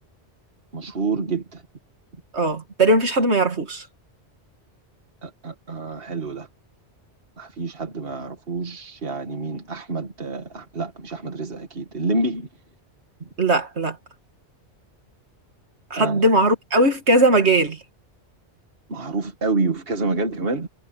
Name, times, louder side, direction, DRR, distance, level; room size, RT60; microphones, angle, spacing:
voice 1, 0.7-1.6 5.2-6.5 7.4-12.5 13.2-13.3 16.0-16.2 18.9-20.7, right 3 dB, 55° right, 2.2 m, -28 dB
voice 2, 2.3-3.9 13.4-14.0 15.9-17.8, right 2 dB, 75° right, 2.5 m, -19 dB
omnidirectional pair, 1.1 m